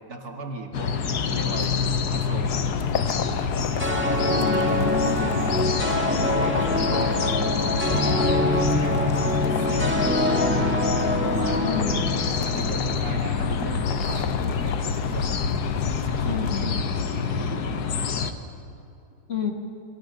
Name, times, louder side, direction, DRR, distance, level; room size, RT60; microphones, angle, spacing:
voice 1, 0.1-0.9 1.3-2.6 3.0-4.5 5.2-5.7 5.9-7.3 7.8-10.0 11.2-11.6 12.4-15.4 16.0-18.1, right 3 dB, 65° right, 2 dB, 2.5 m, -37 dB
sound 1, 0.7-18.3, left 5 dB, 75° left, 1.7 m, -26 dB
sound 2, 2.4-16.6, left 8 dB, 55° left, 0.6 m, -35 dB
sound 3, 3.8-13.1, left 1 dB, 5° right, 1.7 m, -25 dB
voice 2, 4.4-5.4 11.6-12.2 16.3-16.8 19.3-19.5, left 6 dB, 40° left, 2 dB, 1.9 m, -30 dB
27.5 x 23.5 x 6.8 m, 2.8 s
omnidirectional pair, 1.7 m